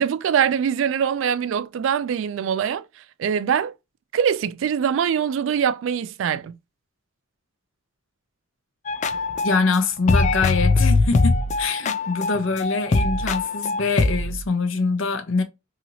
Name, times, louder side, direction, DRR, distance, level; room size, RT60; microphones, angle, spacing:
voice 1, 0.0-2.8 3.2-3.7 4.1-6.6, right 8 dB, 70° right, 0.3 m, -23 dB
sound 1, 8.9-9.8 10.1-14.5, left 3 dB, 40° left, 0.3 m, -22 dB
voice 2, 9.4-15.4, left 4 dB, 70° left, 0.7 m, -24 dB
2.9 x 2.8 x 2.6 m
head